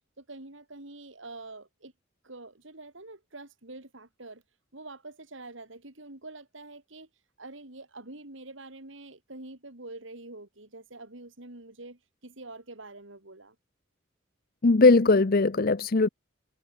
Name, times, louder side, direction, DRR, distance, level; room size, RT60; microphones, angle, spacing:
voice 1, 0.2-1.9 2.2-4.4 4.7-7.1 7.4-13.5, right 2 dB, 70° right, 3.2 m, -46 dB
voice 2, 14.6-16.1, left 3 dB, 45° left, 0.7 m, -20 dB
head